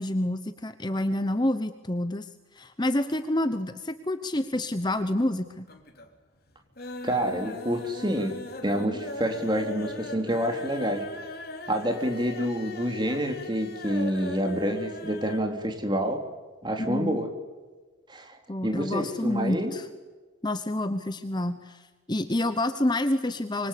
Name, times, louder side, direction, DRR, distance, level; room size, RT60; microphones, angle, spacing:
voice 1, 0.0-2.3 2.5-5.7 16.8-17.2 18.5-19.9 20.4-23.7, left 1 dB, 20° left, 10 dB, 1.0 m, -28 dB
sound 1, 4.7-5.3 5.6-6.2 6.5-15.5 15.8-15.9 16.2-16.3, left 2 dB, 50° left, 3.3 m, -39 dB
voice 2, 7.0-11.1 11.7-16.2 16.6-17.3 18.1-19.7, equal, 20° right, 5 dB, 3.3 m, -28 dB
25.5 x 24.5 x 8.5 m, 1.3 s
head